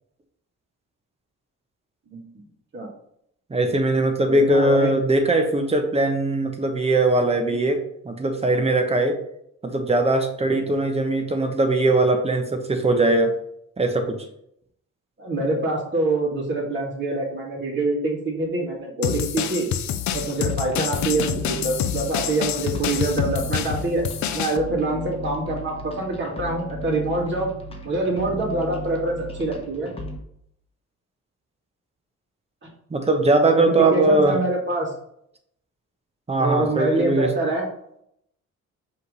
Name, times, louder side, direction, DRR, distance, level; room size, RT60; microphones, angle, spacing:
voice 1, 2.1-2.4 2.7-2.9 4.2-4.9 15.2-19.7 20.1-24.0 24.3-27.5 27.8-29.9 32.6-32.7 33.5-34.9 36.4-37.7, right 2 dB, 40° right, -2 dB, 2.5 m, -25 dB
voice 2, 3.5-9.2 9.6-13.3 13.8-14.2 23.3-23.4 32.9-34.4 36.3-37.3, right 2 dB, 20° right, 5 dB, 1.1 m, -20 dB
sound 1, 19.0-24.6, left 9 dB, 70° left, 0.6 m, -27 dB
sound 2, 20.1-30.2, equal, 20° left, 1.2 m, -36 dB
5.6 x 3.3 x 5.4 m, 0.73 s
cardioid pair, 90°, 30 cm